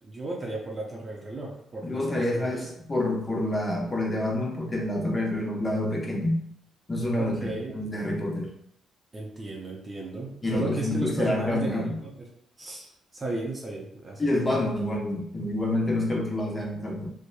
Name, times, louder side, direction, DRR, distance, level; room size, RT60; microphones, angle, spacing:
voice 1, 0.0-2.7 5.3-5.4 7.2-7.8 9.1-12.3 12.6-14.7, right 2 dB, 30° right, -2 dB, 0.6 m, -35 dB
voice 2, 1.9-6.4 6.9-8.5 10.4-11.9 14.2-17.1, left 1 dB, 25° left, -1 dB, 0.8 m, -27 dB
2.8 x 2.1 x 2.2 m, 0.70 s
supercardioid pair, 60°, 0 cm